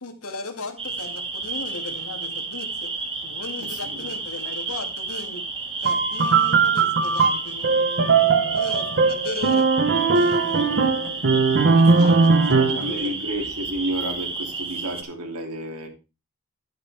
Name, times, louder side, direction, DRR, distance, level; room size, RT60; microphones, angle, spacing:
voice 1, 0.0-2.9 3.2-5.4 5.8-9.7 10.1-12.4 12.7-13.2, left 3 dB, 75° left, 2.3 m, -37 dB
sound 1, 0.8-15.0, right 4 dB, 25° right, 2.2 m, -31 dB
voice 2, 3.6-4.2 11.5-15.9, right 1 dB, 85° right, 3.0 m, -32 dB
sound 2, 5.9-12.9, right 4 dB, 50° right, 1.1 m, -19 dB
12.0 x 10.0 x 3.5 m
head